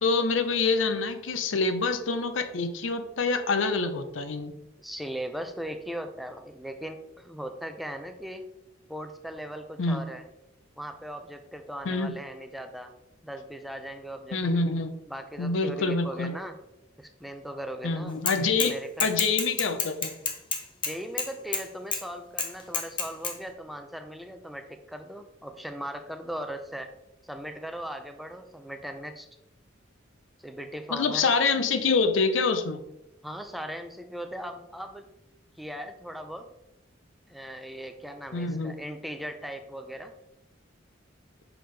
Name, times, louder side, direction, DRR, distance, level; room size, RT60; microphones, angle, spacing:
voice 1, 0.0-4.5 9.8-10.0 11.9-12.2 14.3-14.9 15.4-16.3 17.8-20.1 30.9-32.8 38.3-38.7, left 4 dB, 85° left, 10 dB, 0.6 m, -26 dB
voice 2, 4.8-8.4 8.9-10.3 10.8-12.9 13.2-14.6 15.1-16.6 17.0-18.1 18.6-19.1 20.8-26.9 27.2-29.3 30.4-31.3 33.2-35.1 35.6-36.4 37.3-40.1, equal, ahead, 6 dB, 0.4 m, -38 dB
Bicycle / Mechanisms, 18.3-18.7 19.0-21.6 21.9-22.0 22.4-23.3, left 5 dB, 25° left, 0.8 m, -29 dB
6.0 x 5.2 x 3.3 m, 0.85 s
head